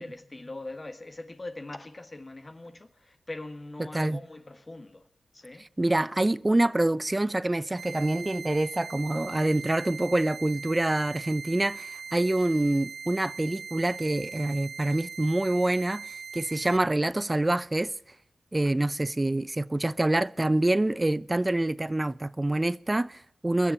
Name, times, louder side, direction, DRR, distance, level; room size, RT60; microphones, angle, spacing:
voice 1, 0.0-5.0 5.3-5.6, left 2 dB, 35° left, 1.4 m, -41 dB
voice 2, 5.6-17.9 18.5-23.7, right 1 dB, 25° right, 0.5 m, -26 dB
sound 1, 7.8-16.8, right 5 dB, 80° right, 0.6 m, -41 dB
20.5 x 7.1 x 9.1 m
cardioid pair, 45°, 0 cm